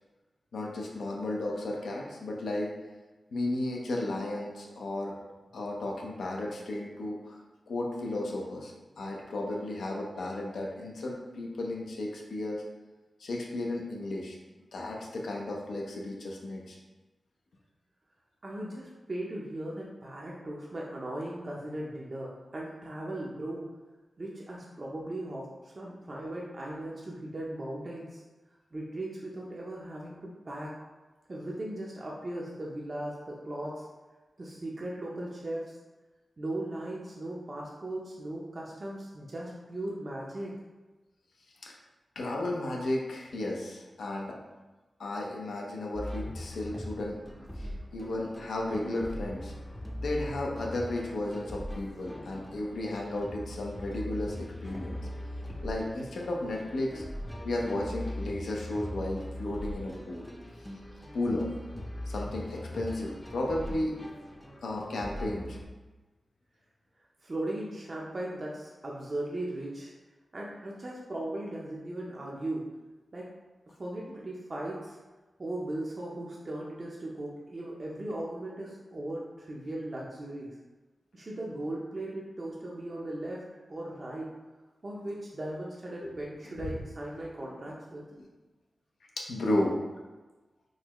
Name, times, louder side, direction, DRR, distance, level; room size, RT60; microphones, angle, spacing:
voice 1, 0.5-2.7 3.3-5.1 5.5-7.4 7.7-12.6 13.2-14.4 14.7-16.8 41.6-41.7 42.2-44.4 45.0-47.2 47.6-49.5 50.0-55.0 55.6-57.0 57.4-60.3 61.1-61.5 62.1-64.0 64.6-65.6 86.6-86.7 88.2-88.3 89.2-89.8, left 1 dB, 85° left, -1 dB, 0.5 m, -34 dB
voice 2, 18.4-23.6 24.2-28.2 28.7-30.7 31.3-33.9 34.4-35.7 36.4-40.5 60.9-61.0 67.2-69.9 70.3-72.7 73.1-73.3 73.8-75.0 75.4-80.5 81.1-83.4 83.7-84.3 84.8-88.0, right 1 dB, 50° right, -4 dB, 0.5 m, -38 dB
sound 1, 45.9-65.7, left 1 dB, 15° left, 0.5 m, -40 dB
3.8 x 2.2 x 3.0 m, 1.2 s
cardioid pair, 45°, 0 cm